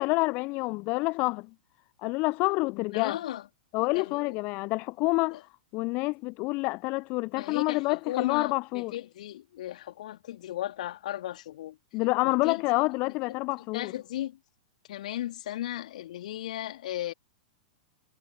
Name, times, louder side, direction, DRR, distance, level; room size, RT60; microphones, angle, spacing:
voice 1, 0.0-1.5 2.0-3.2 3.7-5.4 5.7-8.9 11.9-13.9, left 25 dB, 40° left, 0.4 m, -28 dB
voice 2, 2.9-3.5 3.9-4.4 5.3-5.4 7.3-11.8 12.2-12.6 13.1-13.2 13.6-14.4 14.9-17.1, left 13 dB, 60° left, 2.6 m, -36 dB
figure-of-eight pair, 100°, 5 cm